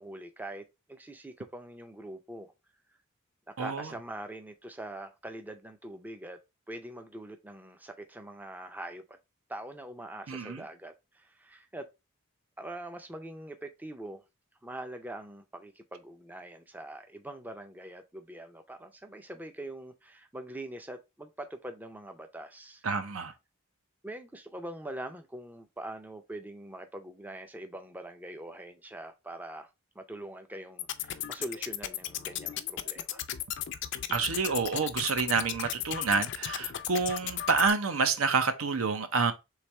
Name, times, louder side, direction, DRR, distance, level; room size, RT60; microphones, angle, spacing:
voice 1, 0.0-2.5 3.5-6.4 6.7-9.2 9.5-11.9 12.6-14.2 14.6-22.8 24.0-29.7 30.0-33.2, right 1 dB, 10° right, 0.4 m, -43 dB
voice 2, 3.6-3.9 10.3-10.6 22.8-23.3 34.1-39.3, right 4 dB, 80° right, 0.7 m, -28 dB
sound 1, 30.8-37.7, left 11 dB, 55° left, 0.4 m, -36 dB
3.5 x 3.2 x 4.2 m
head